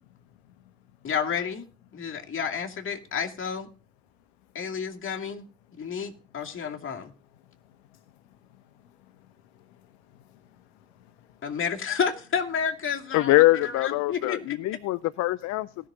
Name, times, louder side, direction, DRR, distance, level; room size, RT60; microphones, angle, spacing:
voice 1, 1.0-1.7 1.9-3.7 4.5-5.5 5.8-7.1 11.4-14.6, left 6 dB, 40° left, 2.5 m, -30 dB
voice 2, 7.5-8.4 8.8-9.3 9.5-11.6, left 11 dB, 75° left, 1.2 m, -59 dB
voice 3, 13.1-15.9, left 18 dB, 55° left, 0.6 m, -23 dB
18.5 x 6.3 x 3.8 m
hypercardioid pair, 50°, 32 cm